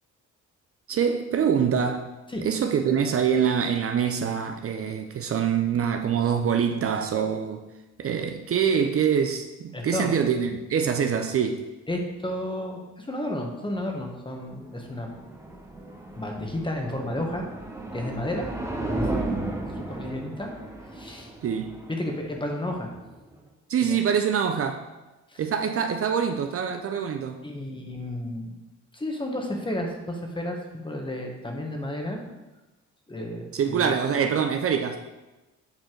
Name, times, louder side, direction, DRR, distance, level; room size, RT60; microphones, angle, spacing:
voice 1, 0.9-2.1 2.4-7.6 8.0-11.7 21.4-21.8 23.7-24.9 25.4-27.4 33.5-35.0, right 7 dB, 50° right, 0.6 m, -25 dB
voice 2, 9.7-10.1 11.9-15.1 16.1-17.5 17.9-18.5 19.0-20.5 20.9-21.3 21.9-22.9 23.9-24.0 25.3-25.4 27.4-28.6 28.9-32.2 33.1-34.0, left 1 dB, 15° left, 1.4 m, -32 dB
sound 1, 14.4-23.4, right 2 dB, 10° right, 1.0 m, -35 dB
7.8 x 4.4 x 4.6 m
cardioid pair, 90°, 30 cm